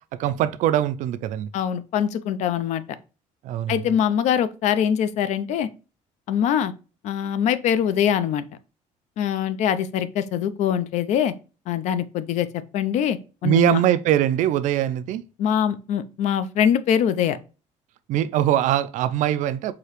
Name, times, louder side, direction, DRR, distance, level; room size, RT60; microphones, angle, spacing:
voice 1, 0.2-1.5 3.4-3.7 13.4-15.2 18.1-19.7, right 12 dB, 65° right, 0.4 m, -22 dB
voice 2, 1.5-2.8 3.7-5.7 6.3-6.7 7.0-8.5 9.2-11.3 11.7-13.8 15.4-17.4, left 9 dB, 60° left, 0.4 m, -23 dB
4.8 x 2.8 x 3.0 m
cardioid pair, 170°, 14 cm